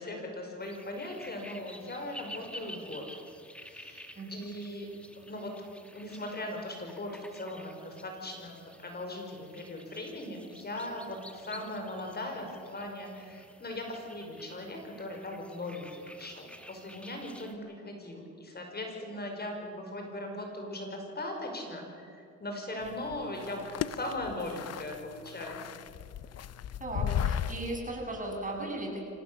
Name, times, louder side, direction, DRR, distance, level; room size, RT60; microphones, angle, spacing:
voice 1, 0.0-3.1 3.6-4.9 5.2-5.5 5.9-25.7, left 1 dB, 30° left, 2 dB, 5.7 m, -39 dB
sound 1, 0.6-17.5, equal, 5° left, 2.1 m, -51 dB
voice 2, 4.2-4.5 22.8-22.9 26.8-29.0, right 1 dB, 25° right, 0 dB, 7.8 m, -37 dB
sound 2, 22.8-27.8, left 9 dB, 55° left, 0.8 m, -35 dB
25.5 x 18.5 x 7.1 m, 2.8 s
cardioid pair, 90°, 30 cm